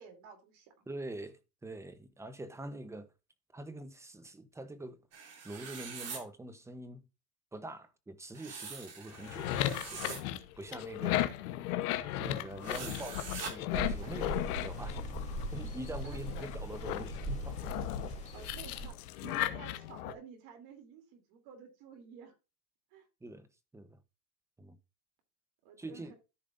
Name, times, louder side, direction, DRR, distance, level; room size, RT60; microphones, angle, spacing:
voice 1, 0.0-0.9 10.0-10.3 14.0-14.4 16.0-16.2 17.8-17.9 18.3-18.9 19.2-22.3 22.9-23.0 25.6-26.2, right 6 dB, 50° right, 3.1 m, -52 dB
voice 2, 0.9-3.1 3.5-5.1 5.4-7.0 7.5-9.6 9.9-10.2 10.6-11.3 12.2-14.3 14.6-15.0 15.5-17.7 23.2-23.5 23.7-24.0 24.6-24.8 25.8-26.1, right 1 dB, 5° right, 0.8 m, -44 dB
sound 1, 5.1-6.2 8.3-10.2 12.6-13.5, right 5 dB, 35° right, 2.8 m, -44 dB
sound 2, 9.1-15.8 16.2-20.1, left 13 dB, 70° left, 1.1 m, -36 dB
sound 3, 13.7-18.9, equal, 15° left, 2.9 m, -40 dB
14.0 x 5.2 x 2.6 m
supercardioid pair, 125°, 46 cm